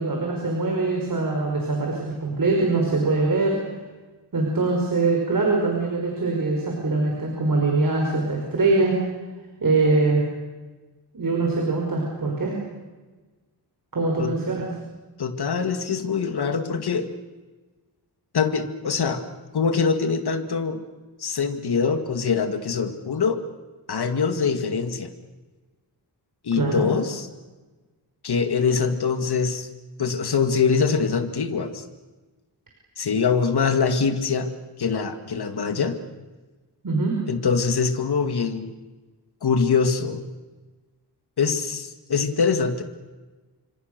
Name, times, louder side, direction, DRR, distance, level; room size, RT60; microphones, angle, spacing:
voice 1, 0.0-3.6 4.3-9.0 9.6-10.2 11.1-12.6 13.9-14.7 26.6-26.9 36.8-37.2, right 3 dB, 55° right, 0 dB, 5.5 m, -23 dB
voice 2, 15.2-17.1 18.3-19.2 19.5-20.8 21.2-23.4 23.9-25.1 26.4-27.3 28.2-29.7 30.0-31.8 33.0-34.5 34.8-36.0 37.3-38.7 39.4-40.2 41.4-42.8, left 5 dB, 70° left, 7 dB, 2.2 m, -23 dB
29.5 x 25.5 x 6.8 m, 1.3 s
wide cardioid pair, 130°, 40 cm